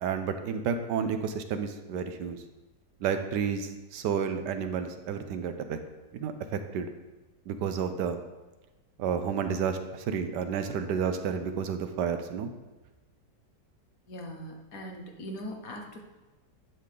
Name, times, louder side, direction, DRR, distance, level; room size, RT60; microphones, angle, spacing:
voice 1, 0.0-2.4 3.0-5.8 6.1-6.9 7.5-8.2 9.0-12.5, right 7 dB, 80° right, 8 dB, 1.3 m, -31 dB
voice 2, 14.1-16.0, equal, 55° left, 2 dB, 1.5 m, -40 dB
11.0 x 3.8 x 6.6 m, 1.1 s
omnidirectional pair, 1.8 m